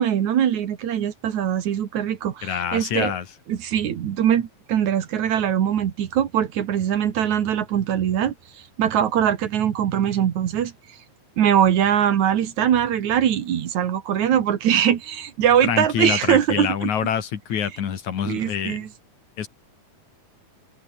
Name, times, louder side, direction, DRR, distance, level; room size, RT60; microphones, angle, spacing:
voice 1, 0.0-3.1 3.5-8.3 8.8-10.7 11.4-16.9 18.2-18.9, right 9 dB, 65° right, 2.9 m, -22 dB
voice 2, 2.4-3.3 15.6-18.8 19.4-19.5, left 8 dB, 65° left, 3.5 m, -26 dB
omnidirectional pair, 3.7 m